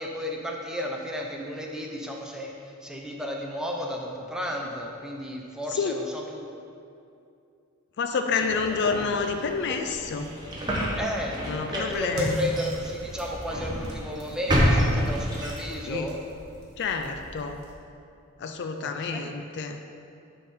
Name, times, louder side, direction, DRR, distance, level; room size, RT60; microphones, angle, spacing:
voice 1, 0.0-6.4 8.3-8.8 11.0-16.2 18.8-19.4, equal, 5° right, -1 dB, 0.6 m, -33 dB
voice 2, 8.0-10.3 11.5-12.5 15.9-16.1 16.8-17.6 18.4-19.8, left 5 dB, 50° left, 6 dB, 0.4 m, -29 dB
sound 1, 8.4-15.9, equal, 20° right, 1.0 m, -29 dB
sound 2, 11.9-17.7, equal, 50° right, 1.3 m, -42 dB
9.3 x 3.7 x 4.2 m, 2.5 s
head